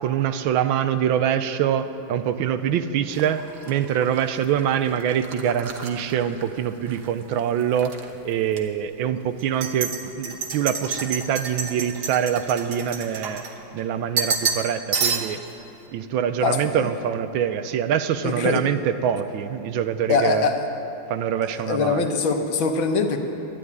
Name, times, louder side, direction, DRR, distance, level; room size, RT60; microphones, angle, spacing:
voice 1, 0.0-13.4 13.7-15.4 15.9-20.5 21.1-22.1, right 9 dB, 80° right, 10 dB, 1.4 m, -24 dB
sound 1, 3.1-7.1 7.4-8.0 8.5-8.6 9.4-13.8 14.2-14.7 14.9-15.5, right 5 dB, 55° right, 1.6 m, -30 dB
voice 2, 16.4-16.9 18.2-18.7 20.1-20.6 21.6-23.2, left 4 dB, 70° left, 4 dB, 1.8 m, -22 dB
12.0 x 11.0 x 9.5 m, 2.9 s
omnidirectional pair, 2.3 m